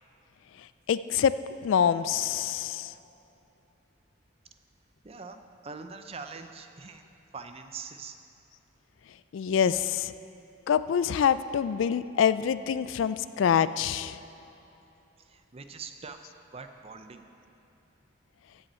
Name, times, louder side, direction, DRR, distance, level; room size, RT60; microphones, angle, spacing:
voice 1, 0.9-1.3 1.6-2.9 9.3-10.1 10.7-14.2, left 8 dB, 70° left, 14 dB, 0.3 m, -25 dB
voice 2, 5.0-8.2 15.3-16.2 16.5-17.2, right 4 dB, 30° right, 7 dB, 0.5 m, -43 dB
15.0 x 7.9 x 4.3 m, 2.9 s
head